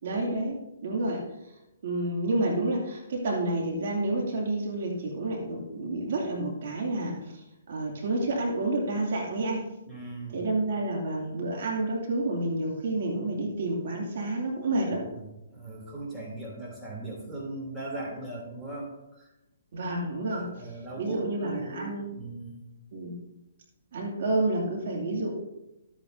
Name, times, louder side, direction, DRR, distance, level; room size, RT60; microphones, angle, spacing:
voice 1, 0.0-1.2 1.8-9.7 10.3-15.0 19.7-20.7 21.0-22.1 22.9-23.2 23.9-25.3, right 2 dB, 60° right, -1 dB, 2.5 m, -29 dB
voice 2, 9.9-10.4 14.9-19.3 20.4-22.6, right 2 dB, 10° right, -3 dB, 3.0 m, -39 dB
13.5 x 8.7 x 2.7 m, 0.94 s
hypercardioid pair, 140°, 0 cm